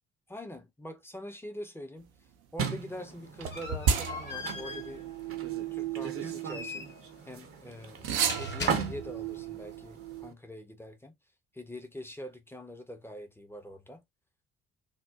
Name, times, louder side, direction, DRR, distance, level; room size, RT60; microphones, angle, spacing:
voice 1, 0.3-2.1 2.5-5.0 5.7-6.9 7.3-11.1 11.5-14.0, left 1 dB, 5° left, 0.7 m, -44 dB
sound 1, 2.6-10.3, right 7 dB, 40° right, 0.7 m, -38 dB
sound 2, 2.7-9.4, left 4 dB, 30° left, 1.1 m, -42 dB
sound 3, 3.4-7.2 8.0-10.3, right 7 dB, 75° right, 0.6 m, -34 dB
3.6 x 2.2 x 2.5 m
figure-of-eight pair, 45°, 33 cm